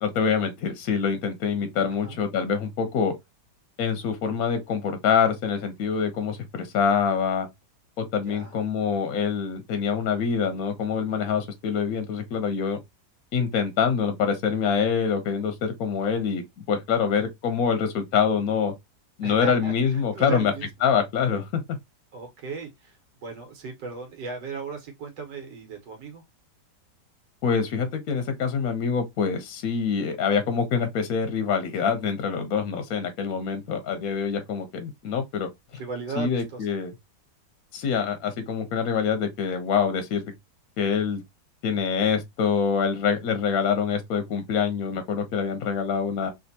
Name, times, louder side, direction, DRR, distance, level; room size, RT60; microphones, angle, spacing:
voice 1, 0.0-3.1 3.8-7.5 8.0-12.8 13.3-16.4 16.7-18.7 19.2-20.5 20.8-21.8 27.4-35.5 36.2-36.9 37.7-40.3 40.8-41.2 41.6-46.3, left 6 dB, 65° left, 0.9 m, -25 dB
voice 2, 19.2-20.7 22.1-26.2 33.5-33.6 35.7-36.7, right 4 dB, 85° right, 1.6 m, -36 dB
3.3 x 2.6 x 2.6 m
omnidirectional pair, 1.9 m